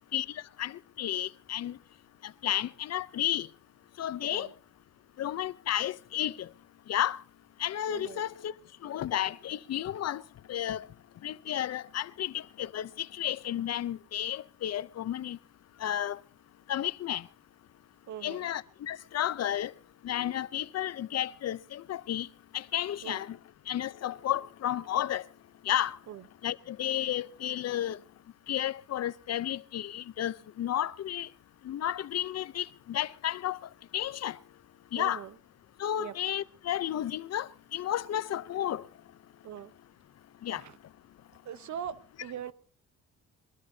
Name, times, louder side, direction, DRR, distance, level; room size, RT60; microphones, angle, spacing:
voice 1, 0.1-1.8 2.2-3.5 4.0-4.5 5.2-6.5 6.9-7.2 7.6-8.5 8.8-10.2 10.5-10.9 11.2-15.4 15.8-16.2 16.7-17.3 18.2-19.7 20.0-22.3 22.5-23.4 23.7-25.2 25.6-26.0 26.4-28.0 28.5-31.3 31.6-33.6 33.9-34.4 34.9-35.2 35.8-38.8 40.4-40.6, left 11 dB, 55° left, 0.7 m, -32 dB
voice 2, 4.2-4.5 7.9-8.2 18.1-18.5 23.0-23.2 26.1-26.2 35.0-35.3 36.0-36.1 39.4-39.7 40.6-40.8 41.4-42.5, right 9 dB, 70° right, 1.0 m, -41 dB
21.5 x 21.5 x 2.8 m
cardioid pair, 90°, 30 cm